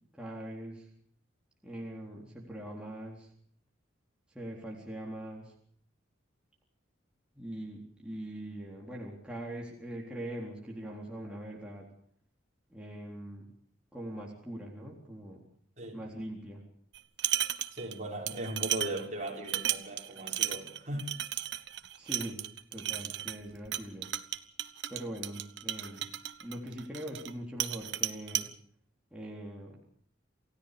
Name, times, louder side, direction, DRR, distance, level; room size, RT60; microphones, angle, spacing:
voice 1, 0.1-0.9 1.6-3.3 4.3-5.5 7.4-11.9 12.7-13.5 13.9-15.4 15.9-16.7 22.0-22.4 22.7-24.1 24.9-26.1 26.4-28.5 29.1-29.8, right 1 dB, 5° right, -3 dB, 3.9 m, -42 dB
sound 1, 16.9-18.0 18.3-27.3 27.6-28.5, right 12 dB, 60° right, 1.2 m, -34 dB
voice 2, 17.7-21.1, right 1 dB, 35° right, 0 dB, 5.9 m, -38 dB
28.5 x 16.5 x 6.9 m, 0.62 s
head